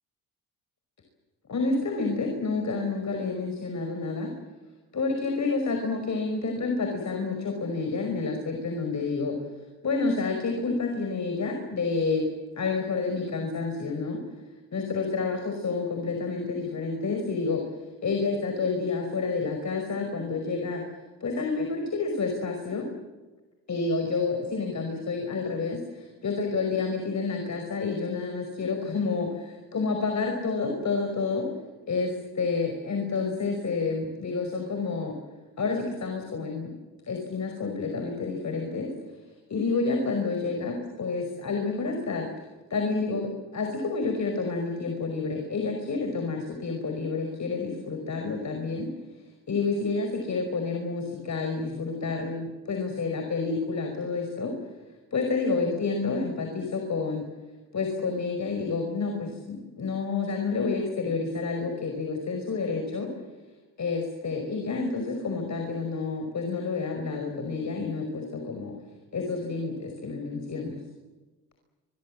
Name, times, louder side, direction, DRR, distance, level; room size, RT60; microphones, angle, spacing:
voice 1, 1.5-4.3 4.9-9.4 9.8-12.3 12.6-14.2 14.7-17.6 18.0-20.8 21.2-22.9 23.7-31.5 31.9-35.1 35.6-36.7 37.1-38.9 39.2-42.3 42.7-48.9 49.5-54.5 55.1-57.3 57.7-63.1 63.8-68.8 69.1-70.8, left 4 dB, 40° left, 4 dB, 5.4 m, -29 dB
27.5 x 23.5 x 7.6 m, 1.3 s
supercardioid pair, 65°, 44 cm